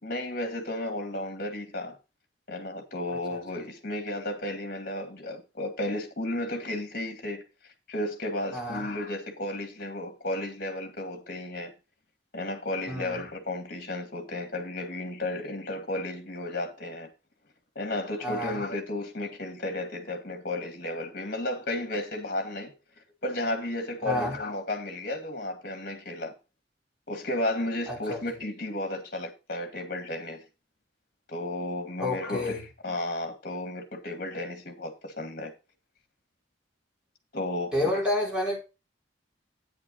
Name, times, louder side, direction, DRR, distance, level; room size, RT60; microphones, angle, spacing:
voice 1, 0.0-2.0 2.5-7.4 7.9-11.7 12.3-17.1 17.8-22.7 23.2-26.3 27.1-30.4 31.3-35.5 37.3-38.0, left 1 dB, 50° left, 2.0 m, -33 dB
voice 2, 8.5-8.9 12.9-13.2 18.2-18.6 24.0-24.4 27.9-28.2 32.0-32.6 37.7-38.6, left 1 dB, 5° right, 3.9 m, -29 dB
9.3 x 8.6 x 4.0 m
head